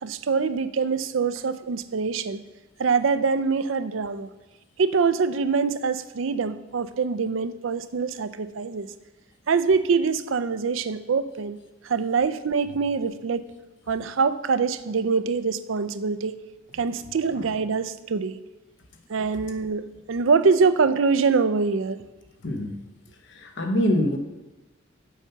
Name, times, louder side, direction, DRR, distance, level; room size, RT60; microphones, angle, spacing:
voice 1, 0.0-2.4 2.8-4.3 4.8-8.9 9.5-11.6 11.8-13.4 13.9-16.4 16.7-18.4 19.1-22.0, right 5 dB, 70° right, 0.5 m, -24 dB
voice 2, 22.4-22.8 23.4-24.2, left 1 dB, 60° left, 1.0 m, -24 dB
7.2 x 5.7 x 6.8 m
head